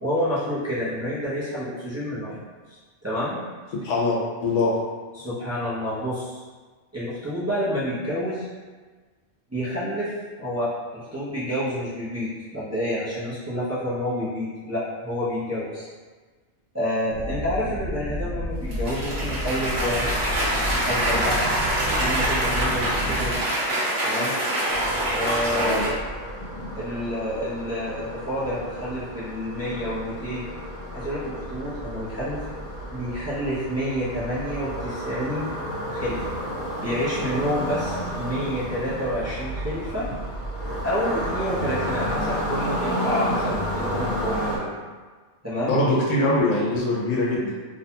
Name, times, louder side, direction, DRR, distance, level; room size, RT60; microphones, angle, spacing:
voice 1, 0.0-2.4 2.7-3.4 5.1-6.4 6.9-8.5 9.5-10.1 10.4-15.9 16.7-20.1 20.8-21.4 22.0-23.3 24.0-24.4 25.1-25.9 26.7-30.4 30.9-32.6 32.9-35.5 35.9-36.3 36.8-40.1 40.8-44.7 45.4-45.9, equal, 25° right, -11 dB, 0.3 m, -29 dB
voice 2, 3.8-4.8 25.5-25.8 45.6-47.5, left 2 dB, 85° left, -4 dB, 0.9 m, -23 dB
sound 1, 17.1-23.4, equal, 85° right, 1.1 m, -31 dB
Cheering / Applause, 18.7-25.9, right 1 dB, 60° right, 1.0 m, -25 dB
sound 2, 24.7-44.6, equal, 45° left, 0.6 m, -31 dB
2.6 x 2.1 x 2.8 m, 1.4 s
omnidirectional pair, 1.3 m